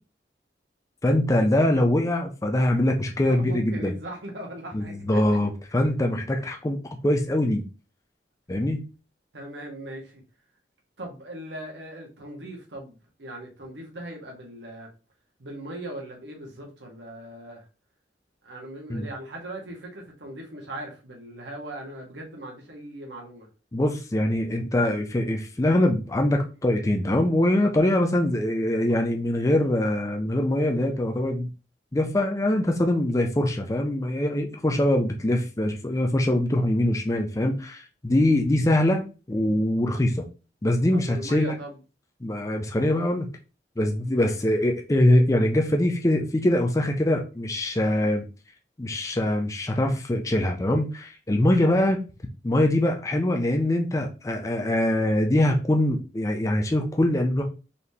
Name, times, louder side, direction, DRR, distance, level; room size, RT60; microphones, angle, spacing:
voice 1, 1.0-3.9 4.7-7.6 8.5-8.8 18.9-19.1 23.7-31.5 31.9-40.2 40.6-41.5 42.2-43.3 43.8-48.3 48.8-52.0 52.4-57.4, left 1 dB, 20° left, 0.4 m, -23 dB
voice 2, 3.2-5.5 9.3-10.2 11.0-14.9 15.4-17.7 18.4-23.5 40.9-41.8 51.5-51.9, right 1 dB, 85° right, 1.3 m, -39 dB
4.0 x 3.3 x 2.8 m
head